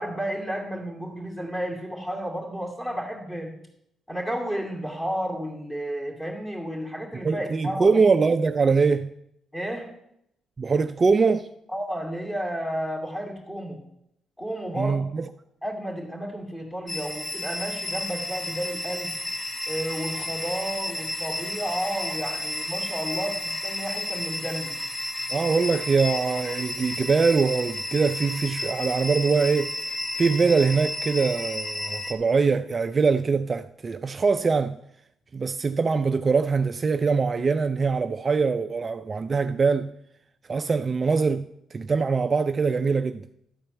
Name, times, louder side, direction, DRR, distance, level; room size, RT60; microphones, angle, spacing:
voice 1, 0.0-3.5 4.1-7.9 9.5-9.9 11.7-13.8 14.4-15.0 15.6-19.1 19.7-24.7, equal, 15° left, 2.3 m, -32 dB
voice 2, 7.2-9.1 10.6-11.5 14.8-15.3 25.3-34.8 35.3-39.9 40.5-43.2, right 4 dB, 35° right, 0.4 m, -23 dB
sound 1, 16.9-32.1, left 1 dB, 30° left, 2.0 m, -32 dB
12.0 x 4.4 x 8.0 m
cardioid pair, 90°, 0 cm